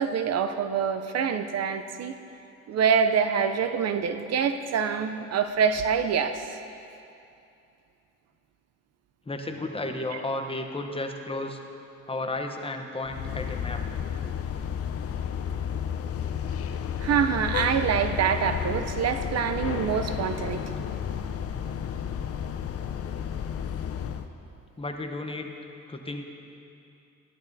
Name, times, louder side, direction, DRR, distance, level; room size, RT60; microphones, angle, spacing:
voice 1, 0.0-2.2 2.7-6.5 17.0-20.7, right 7 dB, 60° right, 8 dB, 0.6 m, -25 dB
voice 2, 9.3-11.6 12.1-13.8 24.8-25.5 25.9-26.2, left 2 dB, 20° left, 4 dB, 0.8 m, -33 dB
sound 1, 13.0-24.3, left 8 dB, 50° left, 0.6 m, -32 dB
14.5 x 11.0 x 2.7 m, 2.6 s
cardioid pair, 90°, 30 cm